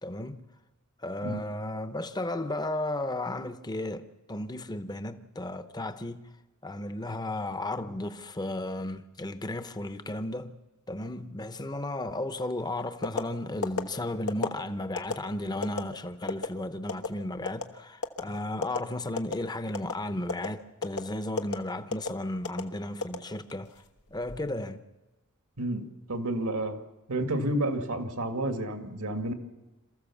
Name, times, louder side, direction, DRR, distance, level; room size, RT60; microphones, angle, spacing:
voice 1, 0.0-0.4 1.0-6.3 6.6-10.6 10.9-23.7 24.1-24.8, left 1 dB, 20° left, 0.8 m, -34 dB
sound 1, 13.0-13.3 13.6-13.8 14.3-14.5 15.0-15.1 15.6-15.8 16.3-16.5 16.9-17.1 17.5-17.7 18.0-18.2 18.6-18.8 19.2-19.4 19.7-19.9 20.3-20.5 20.8-21.0 21.4-21.6 21.9-22.1 22.4-22.6 23.0-23.7 24.1-24.4, left 4 dB, 90° left, 1.4 m, -30 dB
voice 2, 25.6-26.8 27.1-29.3, right 1 dB, 85° right, 2.0 m, -30 dB
27.5 x 14.5 x 7.1 m
head